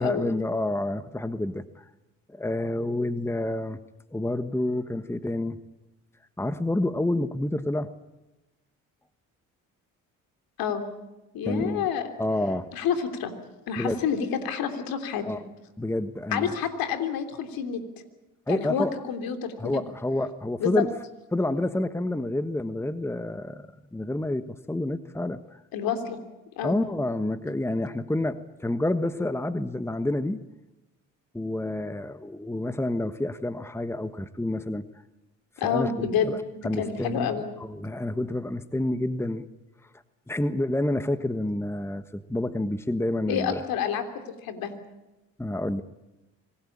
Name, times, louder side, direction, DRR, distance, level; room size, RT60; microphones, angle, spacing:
voice 1, 0.0-1.8 2.3-3.8 4.1-5.6 6.4-7.9 11.4-11.9 12.2-12.7 13.8-13.9 15.2-15.4 15.8-16.5 18.5-18.9 19.6-20.9 21.3-25.6 26.6-30.4 31.3-34.8 35.6-37.4 37.7-39.5 40.3-43.6 45.4-45.8, left 1 dB, 5° left, 12 dB, 1.3 m, -28 dB
voice 2, 11.3-12.1 12.7-13.3 13.7-15.2 16.3-17.8 18.5-19.8 20.6-20.8 25.7-26.2 26.6-26.8 35.6-36.3 36.5-37.5 43.3-44.0 44.4-44.7, left 7 dB, 75° left, 8 dB, 3.3 m, -28 dB
26.0 x 19.0 x 8.7 m, 1.0 s
supercardioid pair, 65°, 36 cm